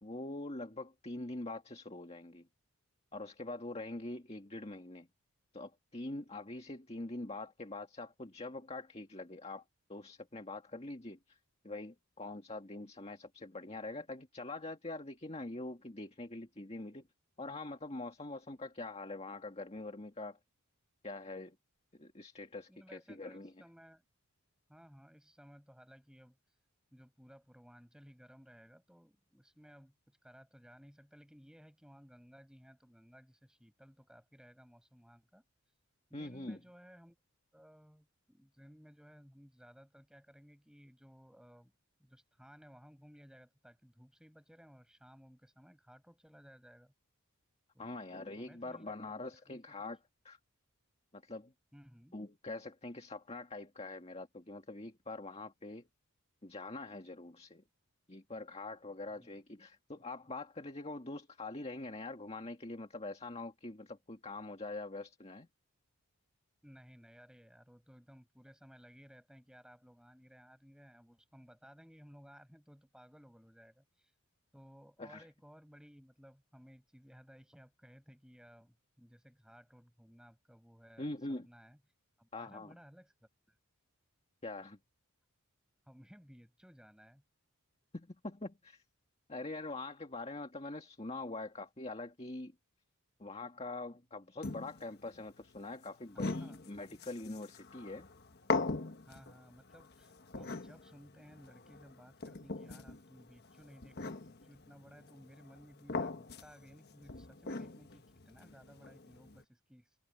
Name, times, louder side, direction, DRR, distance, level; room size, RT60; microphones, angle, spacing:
voice 1, 0.0-2.5 3.1-5.1 5.5-9.6 9.9-11.4 11.6-17.1 17.4-20.4 21.0-21.6 21.9-23.5 36.1-36.6 47.8-50.0 50.2-50.4 51.1-51.5 52.1-55.9 56.4-57.6 58.1-65.5 75.0-75.3 81.0-81.5 82.3-82.8 84.4-84.8 87.9-88.8 89.3-92.5 93.2-98.1, left 2 dB, 25° left, 1.8 m, -44 dB
voice 2, 22.7-24.0 24.7-26.4 26.9-35.4 36.1-37.2 37.5-41.7 42.0-46.9 47.7-48.0 48.4-48.9 49.5-49.6 51.7-52.1 59.1-59.3 66.6-74.1 74.5-81.1 81.4-81.8 82.2-83.6 85.9-87.2 96.1-96.6 99.1-110.0, equal, 5° right, 7.4 m, -59 dB
sound 1, 94.4-109.4, left 3 dB, 45° left, 1.3 m, -42 dB
head